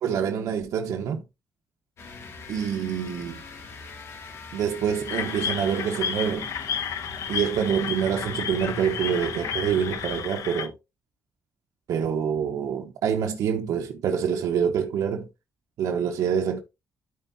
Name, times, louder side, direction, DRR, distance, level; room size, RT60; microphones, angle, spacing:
voice 1, 0.0-1.2 2.5-3.4 4.5-6.5 7.3-10.8 11.9-15.3 15.8-16.6, right 8 dB, 90° right, 1.0 m, -26 dB
sound 1, 2.0-10.5, left 3 dB, 50° left, 2.7 m, -42 dB
sound 2, 5.1-10.7, left 8 dB, 75° left, 1.2 m, -32 dB
13.0 x 4.6 x 2.7 m
cardioid pair, 150°, 6 cm